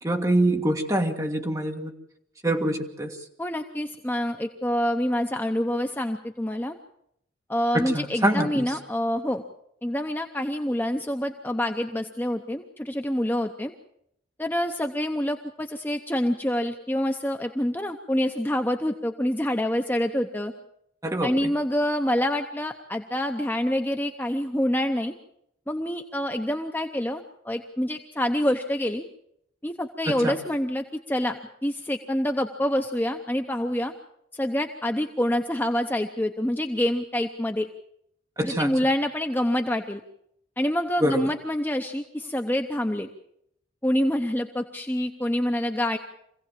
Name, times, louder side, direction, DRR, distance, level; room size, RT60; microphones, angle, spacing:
voice 1, 0.0-1.9 2.4-3.2 7.7-8.7 21.0-21.5 30.1-30.4 38.4-38.7 41.0-41.3, right 1 dB, 15° right, 3 dB, 1.7 m, -25 dB
voice 2, 3.4-6.7 7.5-9.4 9.8-13.7 14.4-20.5 21.2-25.1 25.7-29.0 29.6-33.9 34.3-37.7 38.4-40.0 40.6-43.1 43.8-46.0, left 1 dB, 10° left, 5 dB, 0.7 m, -26 dB
25.0 x 16.5 x 7.4 m, 0.76 s
head